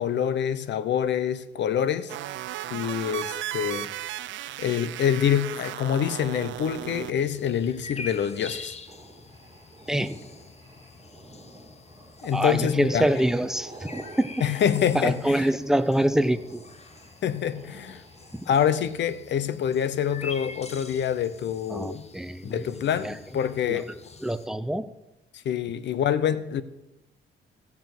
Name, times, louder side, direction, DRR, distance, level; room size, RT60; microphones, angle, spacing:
voice 1, 0.0-2.1 2.7-3.9 4.6-8.7 12.2-13.1 14.4-15.5 17.2-18.0 18.5-22.1 22.4-23.9 25.4-26.6, left 9 dB, 65° left, 0.9 m, -26 dB
sound 1, 2.1-7.1, right 14 dB, 70° right, 0.4 m, -35 dB
sound 2, 7.2-24.5, left 4 dB, 30° left, 1.2 m, -45 dB
sound 3, 8.9-18.8, right 2 dB, 25° right, 2.5 m, -49 dB
voice 2, 9.9-10.2 12.3-14.3 14.9-16.6 18.3-18.5 21.7-22.6 23.0-23.1 23.7-23.8 24.2-24.9, right 1 dB, ahead, 0.7 m, -25 dB
15.5 x 7.3 x 6.1 m
cardioid pair, 90°, 20 cm